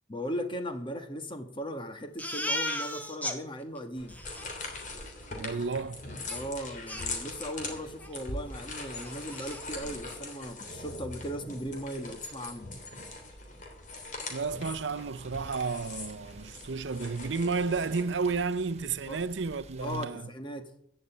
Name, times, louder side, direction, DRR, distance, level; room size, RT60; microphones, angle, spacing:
voice 1, 0.1-4.2 6.3-12.7 19.1-19.2 19.8-20.7, equal, 25° left, 1.5 m, -38 dB
Crying sobbing, 2.2-3.4 3.8-3.9 4.1-4.5 6.3-6.4 6.9-7.7 8.0-8.2 8.5-8.6 9.0-9.6, left 1 dB, 10° left, 1.4 m, -36 dB
sound 1, 4.0-18.0, left 2 dB, 40° left, 3.2 m, -41 dB
voice 2, 5.4-6.1 14.3-20.3, right 4 dB, 70° right, 0.6 m, -32 dB
Rain, 14.5-20.1, right 3 dB, 35° right, 1.2 m, -51 dB
15.0 x 6.7 x 8.9 m
head